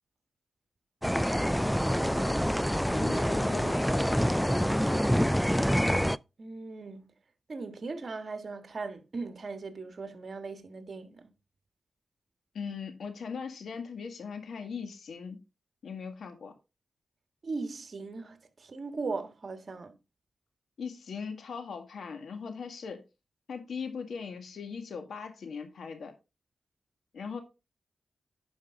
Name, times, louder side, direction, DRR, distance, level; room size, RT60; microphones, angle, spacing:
sound 1, 1.0-6.2, equal, ahead, 0.3 m, -26 dB
voice 1, 1.7-2.7 6.4-7.1 7.5-11.3 17.4-19.9, right 3 dB, 55° right, 1.6 m, -39 dB
voice 2, 2.9-5.1 12.5-15.4 15.8-16.6 20.8-23.0 23.5-26.1 27.1-27.4, left 5 dB, 80° left, 1.9 m, -39 dB
10.5 x 5.4 x 3.7 m
cardioid pair, 55°, 0 cm